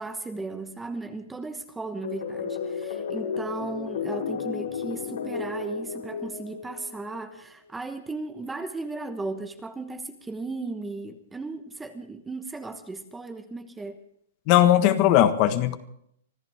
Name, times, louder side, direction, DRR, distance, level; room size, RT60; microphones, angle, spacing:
voice 1, 0.0-14.0, right 3 dB, 5° right, 8 dB, 1.1 m, -36 dB
sound 1, 2.0-7.2, left 6 dB, 90° left, 6.6 m, -33 dB
voice 2, 14.5-15.8, left 12 dB, 35° left, 9 dB, 1.4 m, -18 dB
25.5 x 14.5 x 3.6 m, 0.68 s
hypercardioid pair, 160°, 0 cm